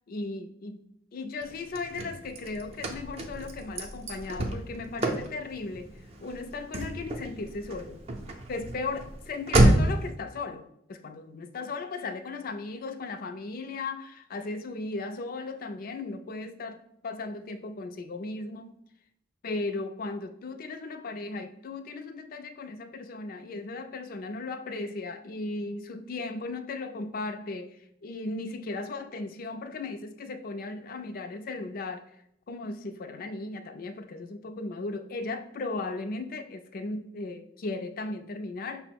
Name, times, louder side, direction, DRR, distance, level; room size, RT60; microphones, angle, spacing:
voice 1, 0.1-5.9 6.2-8.0 8.5-18.7 19.4-32.1 32.5-38.8, left 3 dB, 50° left, 8 dB, 0.4 m, -36 dB
Car / Slam, 1.4-10.1, right 1 dB, 35° right, 0.5 m, -29 dB
5.5 x 2.0 x 4.5 m, 0.74 s
head